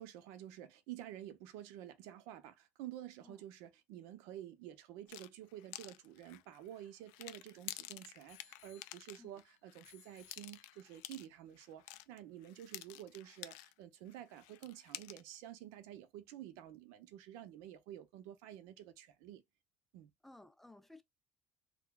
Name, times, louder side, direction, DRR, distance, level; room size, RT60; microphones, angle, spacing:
voice 1, 0.0-19.4 19.9-20.1, right 12 dB, 80° right, 0.7 m, -50 dB
sound 1, 5.1-13.8 14.1-15.4, left 16 dB, 90° left, 0.4 m, -51 dB
Bicycle bell, 6.0-7.6 8.3-9.4 9.8-11.1 11.8-11.9, left 13 dB, 65° left, 0.8 m, -66 dB
voice 2, 20.2-21.0, left 2 dB, 5° left, 0.3 m, -57 dB
3.3 x 2.2 x 3.8 m
cardioid pair, 170°, 5 cm